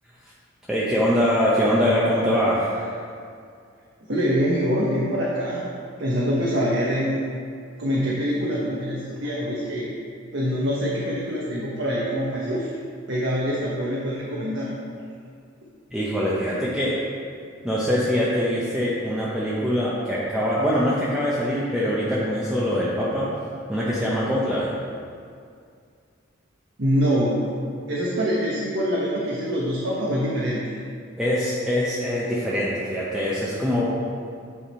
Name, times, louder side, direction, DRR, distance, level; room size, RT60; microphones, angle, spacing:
voice 1, 0.7-2.9 15.9-16.9 17.6-23.3 23.7-24.7 31.2-34.0, equal, 5° right, -8 dB, 0.7 m, -23 dB
voice 2, 4.1-5.6 6.0-7.2 7.8-9.9 10.3-12.7 13.1-14.7 26.8-27.5 27.9-30.6, equal, 60° right, -5 dB, 0.9 m, -24 dB
9.3 x 3.6 x 4.2 m, 2.3 s
head